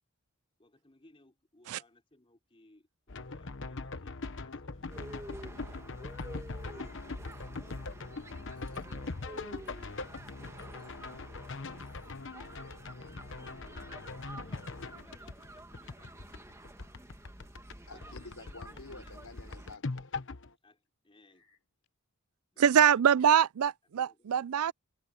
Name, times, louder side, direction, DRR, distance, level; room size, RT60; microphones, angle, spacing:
voice 1, 0.6-6.4 7.3-10.2 10.8-11.4 14.3-16.8 17.9-19.2 20.6-21.5 22.5-23.2 24.0-24.5, left 1 dB, 25° left, 3.4 m, -63 dB
sound 1, 3.1-17.8 18.0-20.5, left 3 dB, 60° left, 1.1 m, -41 dB
sound 2, 4.9-19.8, right 1 dB, 15° right, 1.8 m, -50 dB
sound 3, 6.2-6.7 7.2-7.5 8.5-9.0 9.7-9.8 10.6-11.0 11.7-12.3, right 12 dB, 40° right, 7.4 m, -71 dB
voice 2, 17.9-20.2 21.4-21.6, left 3 dB, 80° left, 3.9 m, -50 dB
voice 3, 22.6-24.7, right 8 dB, 85° right, 0.4 m, -24 dB
head